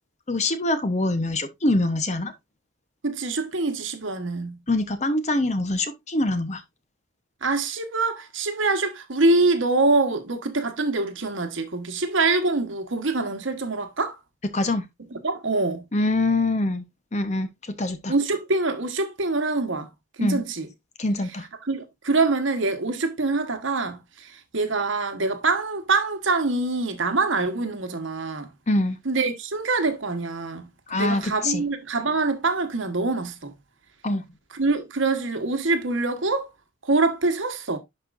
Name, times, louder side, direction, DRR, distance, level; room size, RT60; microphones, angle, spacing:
voice 1, 0.3-2.3 4.7-6.6 14.5-14.9 15.9-16.8 17.1-17.5 17.8-18.1 20.2-20.4 21.0-21.5 28.7-29.0 30.9-31.6 34.0-34.2, left 2 dB, 35° left, 0.8 m, -24 dB
voice 2, 3.0-4.6 7.4-14.2 15.1-15.9 18.1-19.9 20.2-20.7 21.7-28.5 29.0-33.5 34.5-36.5 36.8-37.8, right 3 dB, 75° right, 1.2 m, -25 dB
11.0 x 4.4 x 2.5 m
head